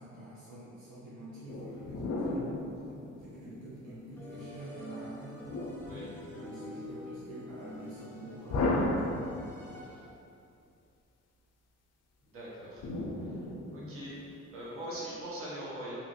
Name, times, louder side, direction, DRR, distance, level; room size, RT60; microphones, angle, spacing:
voice 1, 0.0-2.4 2.8-5.5 6.1-9.2, right 1 dB, 70° right, -9 dB, 0.8 m, -47 dB
sound 1, 1.5-3.8 5.5-6.7 8.5-9.8 12.8-14.3, left 2 dB, 60° left, 0.4 m, -34 dB
sound 2, 4.2-10.2, left 1 dB, 5° left, 0.5 m, -47 dB
voice 2, 12.2-12.8 13.2-13.4 13.7-14.2 14.5-15.9, right 1 dB, 45° right, -8 dB, 1.0 m, -42 dB
2.9 x 2.5 x 2.6 m, 2.6 s
cardioid pair, 90°, 30 cm